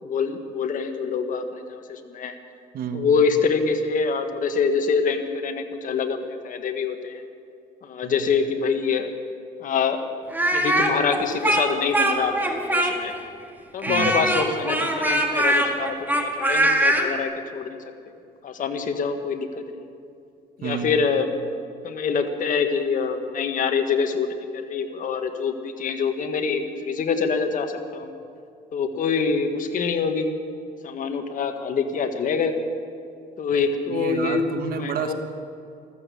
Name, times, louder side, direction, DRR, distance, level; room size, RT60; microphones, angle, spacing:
voice 1, 0.1-2.3 2.9-7.2 7.8-9.1 9.6-10.0 10.5-13.1 13.7-17.8 18.4-19.8 20.6-21.4 21.8-28.2 28.7-30.3 30.8-32.5 33.4-34.4 34.8-35.1, left 5 dB, 50° left, 6 dB, 1.6 m, -25 dB
voice 2, 2.7-3.1 8.0-8.2 13.9-14.3 20.6-20.9 33.9-35.1, right 7 dB, 60° right, 8 dB, 1.4 m, -30 dB
Speech, 10.3-13.2 13.8-17.1, right 1 dB, 10° right, 2.0 m, -22 dB
14.5 x 14.0 x 7.0 m, 2.5 s
cardioid pair, 110°, 17 cm